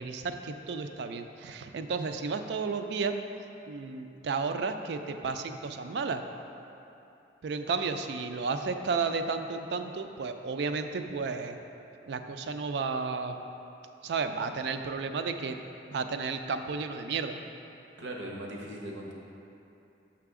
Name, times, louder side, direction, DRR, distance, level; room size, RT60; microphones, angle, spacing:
voice 1, 0.0-3.1 3.7-6.2 7.4-11.6 12.1-13.4 14.0-15.6 15.9-17.4, right 4 dB, 65° right, 7 dB, 0.4 m, -32 dB
voice 2, 18.0-19.1, right 1 dB, 80° right, -1 dB, 0.9 m, -39 dB
6.6 x 5.8 x 3.6 m, 2.8 s
head